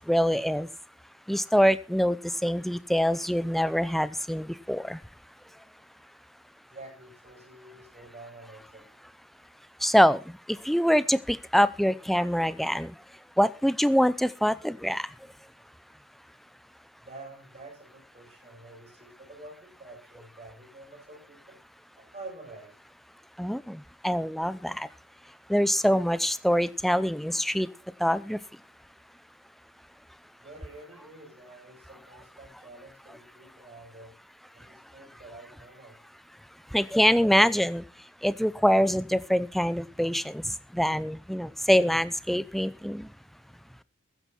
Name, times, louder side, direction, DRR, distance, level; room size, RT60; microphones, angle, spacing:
voice 1, 0.1-0.7 1.3-2.2 2.4-5.0 9.8-10.2 10.7-12.9 13.4-15.0 23.4-23.8 24.0-24.9 25.5-27.7 28.0-28.4 36.7-37.8 38.2-40.4 40.7-43.1, equal, ahead, 16 dB, 0.6 m, -24 dB
voice 2, 6.7-9.0 17.0-21.6 22.0-22.8 30.4-34.2 34.5-36.1, right 2 dB, 30° right, 1 dB, 7.8 m, -48 dB
14.5 x 11.0 x 4.3 m, 0.33 s
head